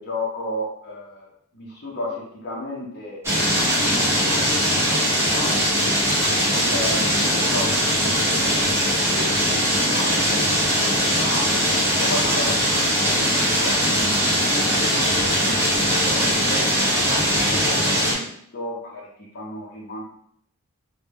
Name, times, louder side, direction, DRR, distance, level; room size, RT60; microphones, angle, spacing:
voice 1, 0.0-4.6 5.1-5.8 6.5-8.8 9.1-11.5 11.9-12.6 13.4-14.2 14.6-20.0, left 1 dB, 50° left, -4 dB, 0.6 m, -34 dB
sound 1, 3.2-18.1, equal, 10° right, 0.6 m, -20 dB
2.2 x 2.1 x 3.2 m, 0.68 s
head